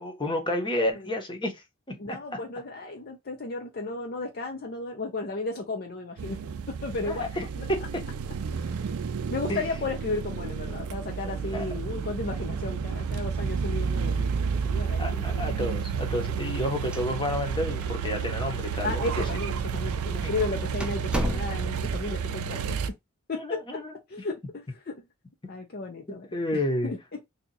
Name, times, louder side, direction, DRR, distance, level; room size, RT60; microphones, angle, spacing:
voice 1, 0.0-2.4 7.0-8.0 9.5-9.6 11.2-11.7 15.0-19.3 19.7-19.8 20.2-20.3 23.3-24.0 26.1-26.9, left 1 dB, 20° left, 0.9 m, -31 dB
voice 2, 2.0-6.4 6.7-7.3 7.6-7.7 8.5-8.7 9.3-15.6 18.8-22.8 23.3-23.8 24.1-24.4 24.9-25.0 25.5-27.3, left 3 dB, 45° left, 0.6 m, -34 dB
sound 1, 6.2-22.9, right 6 dB, 80° right, 0.4 m, -31 dB
sound 2, 16.9-17.6 17.8-17.9 18.7-18.8 19.5-19.7 20.2-20.3 20.8-21.9, equal, 5° right, 0.4 m, -32 dB
2.8 x 2.4 x 3.9 m
head